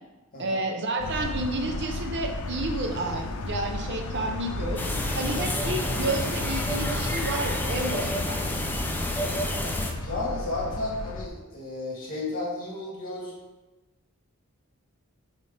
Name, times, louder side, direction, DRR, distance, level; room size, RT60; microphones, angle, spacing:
voice 1, 0.4-4.8 5.1-8.6, right 2 dB, 55° right, 3 dB, 0.7 m, -31 dB
sound 1, 1.0-11.3, left 2 dB, 85° left, 0.5 m, -34 dB
sound 2, 4.8-9.9, left 1 dB, 10° left, 0.5 m, -29 dB
voice 2, 7.7-8.2 10.0-13.3, left 2 dB, 40° left, -4 dB, 2.0 m, -33 dB
5.2 x 4.0 x 5.0 m, 1.1 s
head